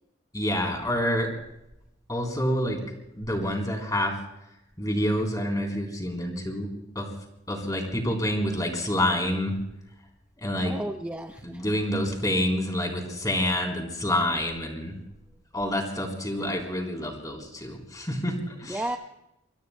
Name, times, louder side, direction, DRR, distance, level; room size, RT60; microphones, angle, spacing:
voice 1, 0.3-1.3 2.1-2.8 3.2-4.2 4.8-6.7 7.0-7.1 7.5-9.6 10.4-10.7 11.4-15.0 15.5-18.8, left 1 dB, 20° left, 3 dB, 3.6 m, -27 dB
voice 2, 10.7-11.6 18.7-19.0, right 1 dB, 10° right, 4 dB, 0.7 m, -33 dB
27.5 x 23.0 x 2.2 m, 0.87 s
head